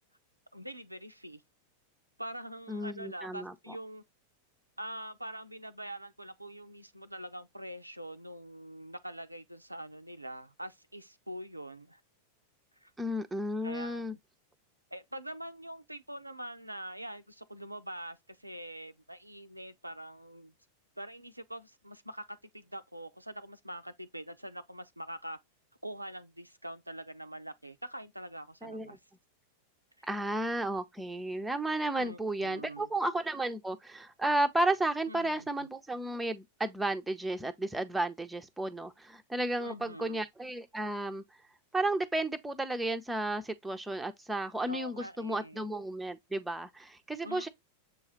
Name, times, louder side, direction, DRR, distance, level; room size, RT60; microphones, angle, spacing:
voice 1, 0.5-1.4 2.2-4.0 4.8-12.0 12.8-12.9 13.6-14.2 14.9-20.5 21.0-25.4 25.8-29.0 30.0-30.1 32.0-32.9 35.1-35.7 39.6-40.2 44.7-45.7 47.2-47.5, right 1 dB, 85° right, 0.3 m, -44 dB
voice 2, 2.7-3.5 13.0-14.1 28.6-29.0 30.1-41.2 41.7-47.5, right 1 dB, 5° right, 0.5 m, -33 dB
6.9 x 2.3 x 2.9 m
figure-of-eight pair, 90°, 0 cm